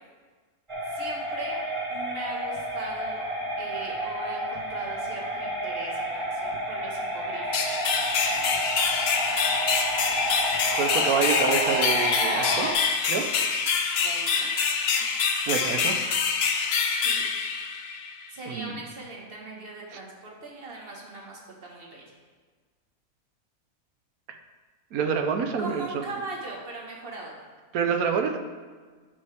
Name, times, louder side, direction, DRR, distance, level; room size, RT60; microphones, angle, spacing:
sound 1, 0.7-12.7, right 1 dB, 25° right, 1.1 m, -30 dB
voice 1, 0.9-1.6 1.9-3.3 3.6-7.8 14.0-14.5 17.0-17.2 18.3-22.0 25.6-27.4, right 2 dB, 40° right, -2 dB, 1.7 m, -39 dB
sound 2, 7.5-18.2, left 5 dB, 55° left, 0.8 m, -26 dB
voice 2, 10.7-12.7 13.0-13.3 15.5-16.0 18.5-18.8 24.9-26.0 27.7-28.4, right 6 dB, 85° right, 5 dB, 1.3 m, -27 dB
11.5 x 5.4 x 3.5 m, 1.5 s
omnidirectional pair, 1.5 m